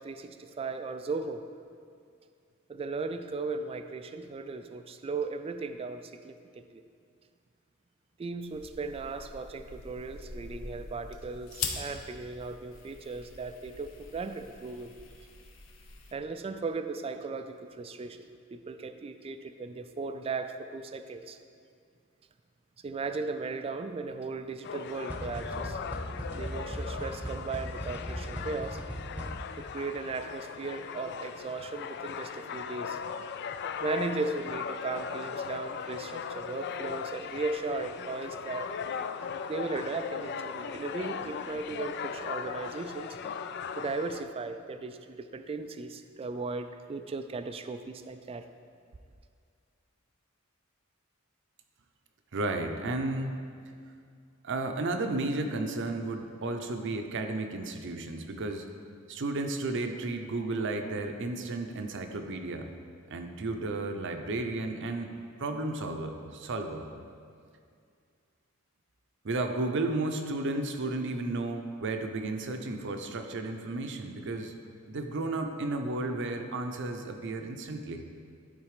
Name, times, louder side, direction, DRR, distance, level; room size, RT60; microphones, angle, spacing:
voice 1, 0.0-1.5 2.7-6.8 8.2-14.9 16.1-21.4 22.8-25.8 26.3-28.8 29.6-33.0 33.8-38.7 39.5-43.1 43.7-48.4, right 3 dB, 25° right, 8 dB, 0.3 m, -37 dB
sound 1, 8.4-16.1, left 4 dB, 80° left, 0.8 m, -43 dB
sound 2, 24.6-44.2, left 6 dB, 55° left, 0.3 m, -38 dB
sound 3, 25.1-29.7, equal, 10° right, 0.9 m, -38 dB
voice 2, 52.3-53.4 54.4-58.7 59.1-62.7 63.1-65.1 65.4-66.9 69.2-74.5 74.9-78.1, right 2 dB, 60° right, 5 dB, 0.7 m, -33 dB
11.5 x 4.1 x 4.9 m, 2.2 s
head